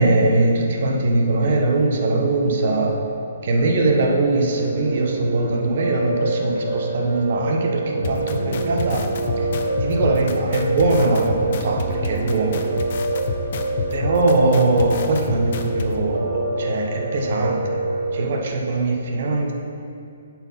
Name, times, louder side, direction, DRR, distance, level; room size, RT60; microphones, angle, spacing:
voice 1, 0.0-3.0 3.4-9.1 9.4-9.5 9.8-12.7 13.9-17.8 18.1-19.5, right 2 dB, 50° right, 1 dB, 1.1 m, -21 dB
Piano, 4.6-18.3, right 2 dB, 85° right, 1.1 m, -26 dB
sound 1, 8.0-15.9, left 5 dB, 45° left, 0.6 m, -28 dB
7.7 x 4.5 x 5.8 m, 2.6 s
hypercardioid pair, 165°, 0 cm